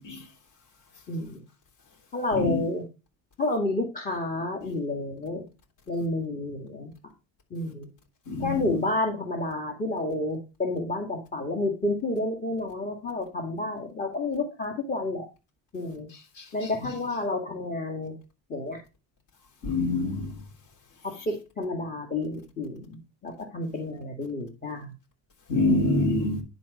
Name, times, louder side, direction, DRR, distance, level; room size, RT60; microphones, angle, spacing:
voice 1, 1.1-1.4 2.1-2.8 3.4-5.4 5.9-6.9 7.5-7.9 8.4-15.2 15.7-16.1 16.5-18.1 18.5-18.8 21.0-22.9 23.2-24.9, left 2 dB, 20° left, 2.0 m, -30 dB
voice 2, 8.3-8.8 19.6-20.3 25.5-26.4, left 2 dB, 50° left, 3.3 m, -25 dB
10.5 x 4.1 x 5.1 m
supercardioid pair, 115°, 38 cm